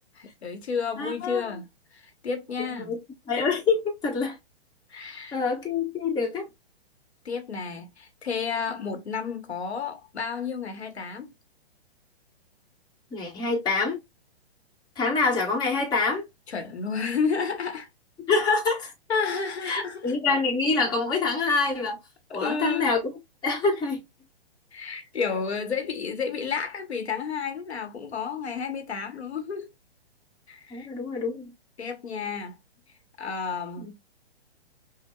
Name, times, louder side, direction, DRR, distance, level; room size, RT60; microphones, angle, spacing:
voice 1, 0.1-1.7 1.9-2.9 4.9-5.4 7.2-11.3 16.5-17.9 19.1-20.1 22.3-22.9 24.7-29.7 30.5-30.9 31.8-32.6 33.2-33.9, left 5 dB, 85° left, 1.0 m, -31 dB
voice 2, 1.0-1.4 2.6-3.0 3.3-4.4 4.9-5.0 5.3-6.5 13.1-14.0 15.0-16.2 18.3-18.9 19.6-22.0 22.3-23.0 23.4-24.0 30.7-31.5 33.8-33.9, left 4 dB, 15° left, 1.0 m, -26 dB
5.7 x 2.1 x 2.2 m
hypercardioid pair, 130°, 32 cm